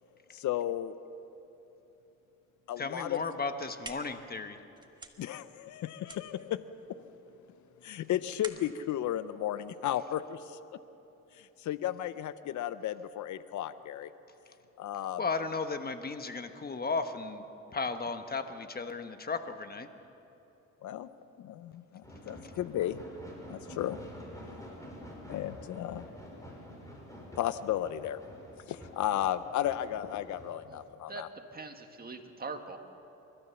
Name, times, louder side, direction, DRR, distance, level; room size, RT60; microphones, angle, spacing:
voice 1, 0.3-1.0 2.7-3.2 5.2-6.6 7.8-10.6 11.4-14.1 14.8-15.2 20.8-21.1 21.4-23.0 23.5-24.0 25.3-26.1 27.4-28.2 28.7-31.3, left 12 dB, 75° left, 14 dB, 0.7 m, -34 dB
voice 2, 2.8-4.6 15.2-17.4 17.7-19.9, left 4 dB, 30° left, 8 dB, 1.3 m, -35 dB
sound 1, 3.5-10.3, right 2 dB, 15° right, 1.7 m, -50 dB
sound 2, 22.0-30.5, equal, 10° left, 5.9 m, -48 dB
voice 3, 31.5-32.8, right 3 dB, 30° right, 5 dB, 1.8 m, -42 dB
29.5 x 13.5 x 7.0 m, 3.0 s
cardioid pair, 90°, 30 cm